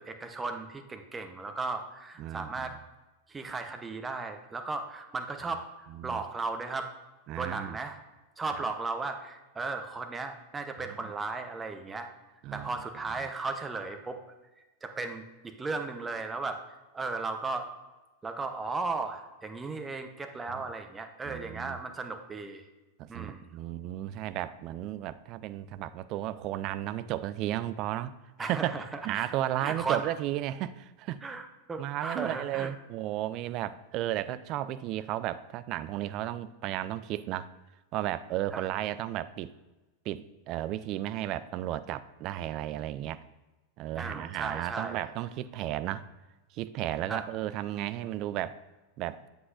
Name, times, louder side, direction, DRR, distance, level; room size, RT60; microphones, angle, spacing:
voice 1, 0.0-2.7 3.3-5.6 6.0-6.9 7.4-8.0 8.4-12.1 12.5-14.2 14.8-16.6 16.9-17.7 18.2-22.7 23.1-23.5 28.4-28.8 29.2-29.3 29.6-30.1 31.2-32.7 38.5-38.6 44.0-45.0 47.1-47.2, right 3 dB, 15° right, 6 dB, 0.7 m, -36 dB
voice 2, 2.2-2.8 5.9-6.2 7.3-7.8 11.0-11.1 12.4-12.7 13.2-13.3 20.5-20.6 21.2-21.8 23.0-28.1 28.4-28.7 29.0-31.2 31.8-37.5 37.9-39.5 40.1-43.2 43.8-46.1 46.5-48.6 49.0-49.2, right 13 dB, 40° right, 14 dB, 0.3 m, -34 dB
7.8 x 7.6 x 2.5 m, 1.1 s
figure-of-eight pair, 90°, 0 cm